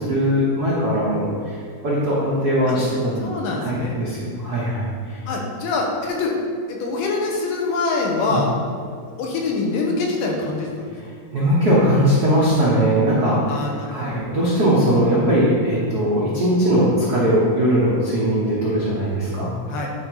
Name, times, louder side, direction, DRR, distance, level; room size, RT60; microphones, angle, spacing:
voice 1, 0.0-3.3 3.6-5.2 8.2-8.4 11.0-11.1 11.3-13.5 13.9-19.5, equal, 85° right, -7 dB, 0.8 m, -20 dB
voice 2, 3.2-4.0 5.3-6.3 6.7-8.5 9.2-10.9 13.5-14.3 19.7-19.9, left 3 dB, 90° left, 0 dB, 2.7 m, -24 dB
9.5 x 3.8 x 4.7 m, 2.1 s
omnidirectional pair, 3.8 m